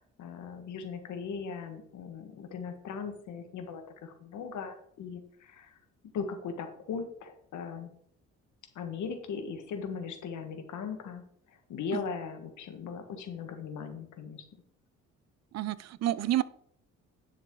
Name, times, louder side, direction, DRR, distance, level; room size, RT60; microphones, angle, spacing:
voice 1, 0.0-5.8 6.1-7.9 8.8-11.2 11.5-14.4, left 6 dB, 75° left, 6 dB, 1.7 m, -39 dB
voice 2, 15.5-16.4, right 13 dB, 60° right, 18 dB, 0.6 m, -29 dB
10.5 x 6.6 x 3.9 m, 0.66 s
cardioid pair, 90°, 30 cm